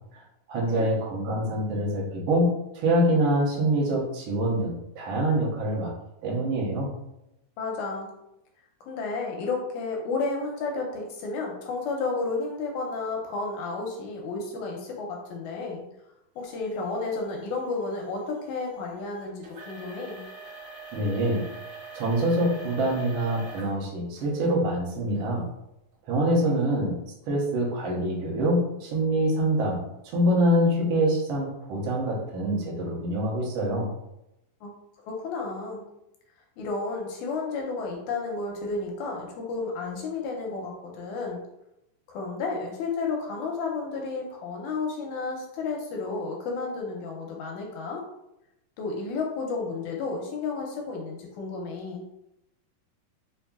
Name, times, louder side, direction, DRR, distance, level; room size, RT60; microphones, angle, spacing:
voice 1, 0.5-5.9 6.2-6.9 20.9-21.4 21.9-25.5 26.0-26.9 27.3-29.8 30.1-33.9, right 1 dB, 80° right, -4 dB, 1.1 m, -25 dB
voice 2, 7.6-8.1 8.9-15.8 16.4-20.2 26.5-26.6 34.6-34.7 35.1-35.9 36.6-41.4 42.1-48.0 48.8-52.0, left 3 dB, 80° left, 0 dB, 1.8 m, -32 dB
sound 1, 16.4-23.8 24.2-24.5 25.1-25.2 25.9-26.0, right 4 dB, 60° right, 1.6 m, -45 dB
5.4 x 2.7 x 2.3 m, 0.87 s
omnidirectional pair, 3.9 m